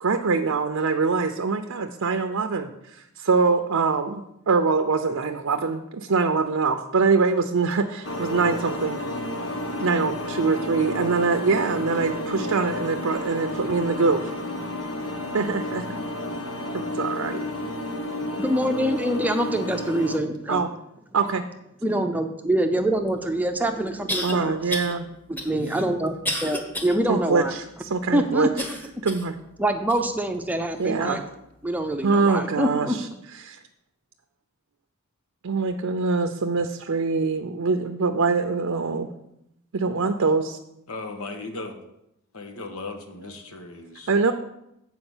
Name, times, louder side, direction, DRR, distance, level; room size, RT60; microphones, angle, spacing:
voice 1, 0.0-9.0 9.8-14.4 15.3-15.8 16.7-17.5 20.5-20.7 21.1-21.4 24.2-25.1 27.1-28.5 29.0-29.3 30.8-31.2 32.0-33.0 33.4-33.6 35.4-39.1 39.7-40.6 43.2-43.4 44.1-44.3, right 4 dB, 70° right, 6 dB, 0.6 m, -24 dB
sound 1, 8.0-20.2, left 1 dB, 70° left, 1.1 m, -31 dB
voice 2, 18.3-20.6 21.8-24.6 25.3-26.2 26.4-27.5 28.1-28.8 29.6-31.2 31.6-33.0, right 1 dB, 10° right, 5 dB, 0.6 m, -25 dB
sound 2, 23.1-23.2 24.1-24.3 24.7-24.9 25.4-27.0 27.4-27.5 28.6-29.3 29.9-30.0 30.8-30.9, left 1 dB, 10° left, 1.1 m, -31 dB
voice 3, 40.9-41.8 42.3-44.1, left 3 dB, 90° left, 5 dB, 1.2 m, -36 dB
7.9 x 4.7 x 7.2 m, 0.82 s
head